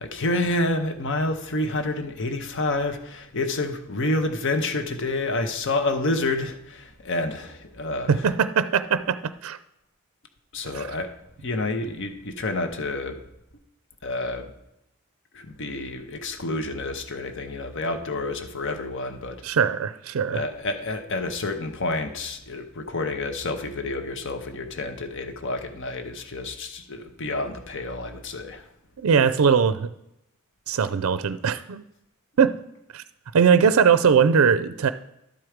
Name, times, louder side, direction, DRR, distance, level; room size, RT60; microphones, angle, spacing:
voice 1, 0.0-8.3 10.5-11.1 11.4-13.2 14.0-14.5 15.3-19.4 20.3-28.6, left 2 dB, 60° left, 7 dB, 0.8 m, -29 dB
voice 2, 8.1-9.6 10.7-10.9 19.4-20.4 29.0-29.9 30.7-31.8 32.4-32.6 32.9-33.0 33.3-34.9, right 6 dB, 75° right, 13 dB, 0.4 m, -20 dB
12.0 x 4.6 x 4.9 m, 0.84 s
head